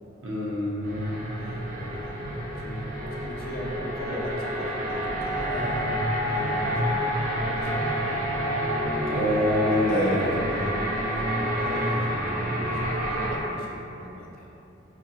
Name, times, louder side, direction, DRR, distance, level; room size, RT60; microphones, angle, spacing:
voice 1, 0.2-1.1 9.1-10.2, left 1 dB, 80° right, -6 dB, 0.7 m, -25 dB
sound 1, 0.8-13.4, equal, 45° right, 0.5 m, -28 dB
voice 2, 1.4-2.3 2.6-2.9 3.2-5.9 6.3-6.9 7.5-8.6 9.7-14.5, left 1 dB, 50° left, -3 dB, 0.5 m, -38 dB
4.1 x 2.7 x 2.4 m, 2.9 s
head